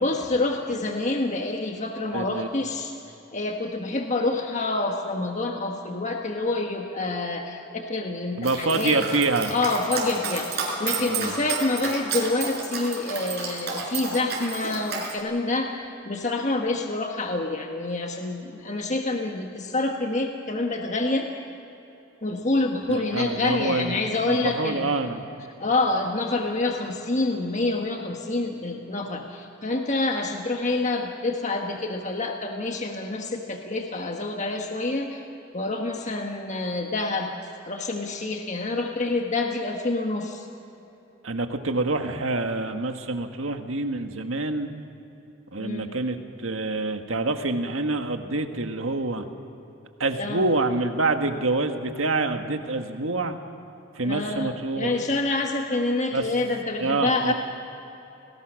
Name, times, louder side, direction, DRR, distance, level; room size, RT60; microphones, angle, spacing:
voice 1, 0.0-2.9 3.3-9.1 9.5-21.3 22.2-24.9 25.6-35.2 35.5-37.3 37.7-40.5 45.6-46.0 50.2-50.5 54.0-57.3, left 2 dB, 35° left, 2 dB, 1.5 m, -27 dB
voice 2, 2.1-2.5 8.4-9.5 11.0-11.3 22.9-25.2 41.2-44.7 45.5-49.2 50.0-53.3 54.0-54.9 56.1-56.2 56.8-57.3, right 2 dB, 75° right, 6 dB, 1.7 m, -26 dB
Dog, 8.4-15.1, right 5 dB, 55° right, 5.6 m, -31 dB
29.5 x 19.5 x 6.5 m, 3.0 s
head